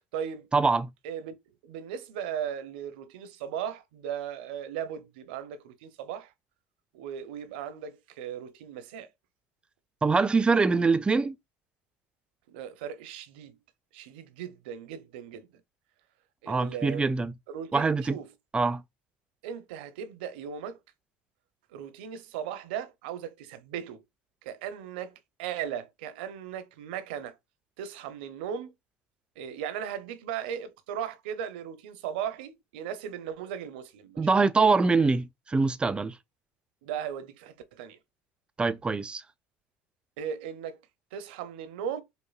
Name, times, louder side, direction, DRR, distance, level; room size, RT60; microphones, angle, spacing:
voice 1, 0.0-0.5 1.0-1.3 1.6-6.3 6.9-9.1 12.5-13.6 13.9-15.5 16.4-17.1 17.5-18.3 19.4-20.8 21.7-24.0 24.4-27.4 27.8-28.7 29.4-34.3 36.8-38.0 40.2-40.8 41.1-42.0, right 8 dB, 85° right, 0.7 m, -37 dB
voice 2, 0.5-0.9 10.0-11.3 16.5-17.3 17.7-18.2 18.5-18.8 34.2-36.1 38.6-39.2, right 4 dB, 20° right, 0.4 m, -24 dB
5.3 x 2.1 x 2.3 m
supercardioid pair, 90°, 5 cm